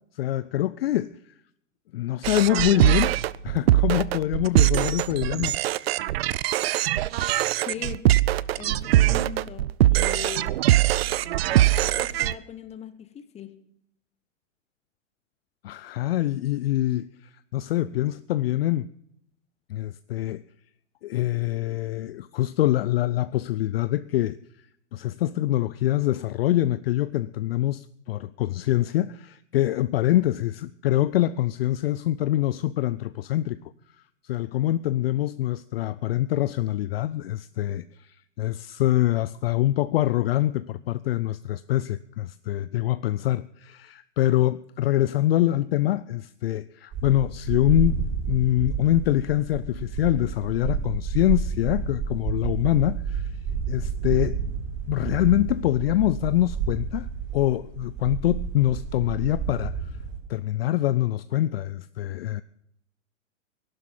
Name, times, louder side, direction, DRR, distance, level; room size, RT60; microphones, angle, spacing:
voice 1, 0.2-1.2 1.9-3.2 3.4-5.6 15.6-17.1 17.5-18.9 19.7-20.4 21.0-24.4 24.9-33.6 34.2-48.0 48.3-53.3 53.7-54.4 54.9-57.1 57.3-59.7 60.3-62.4, left 14 dB, 50° left, 16 dB, 0.5 m, -24 dB
sound 1, 2.2-12.3, right 14 dB, 50° right, 0.6 m, -22 dB
voice 2, 7.6-8.0 8.5-10.6 11.5-13.5, left 9 dB, 15° left, 12 dB, 1.2 m, -39 dB
sound 2, 46.9-60.2, right 6 dB, 30° right, 6.4 m, -30 dB
16.5 x 12.0 x 7.4 m, 0.74 s
hypercardioid pair, 115°, 39 cm